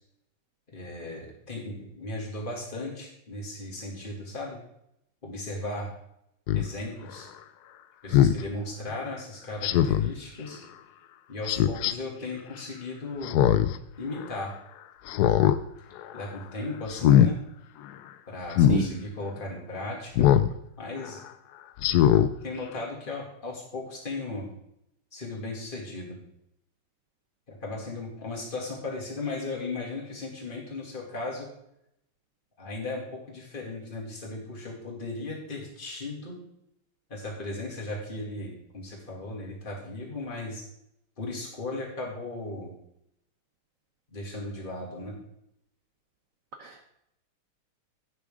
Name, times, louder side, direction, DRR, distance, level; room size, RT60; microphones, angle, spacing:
voice 1, 0.7-4.6 5.2-5.9 6.5-7.3 8.0-10.6 11.3-13.4 14.0-14.5 16.1-17.4 18.3-20.3 20.8-21.2 22.4-24.5 25.1-26.2 27.5-31.5 32.6-36.4 37.1-40.6 41.2-42.7 44.1-45.1, left 2 dB, 25° left, -2 dB, 2.7 m, -36 dB
Speech synthesizer, 6.5-6.7 8.1-8.4 9.6-10.1 11.5-11.9 13.2-13.8 14.1-14.2 15.1-15.6 16.0-16.3 16.9-17.3 18.5-18.8 20.2-20.5 21.0-21.1 21.8-22.3 22.7-22.8, left 11 dB, 85° left, 0.8 m, -20 dB
voice 2, 18.7-19.0 46.6-46.9, right 4 dB, 55° right, 4 dB, 1.0 m, -29 dB
16.5 x 6.8 x 3.7 m, 0.77 s
omnidirectional pair, 2.3 m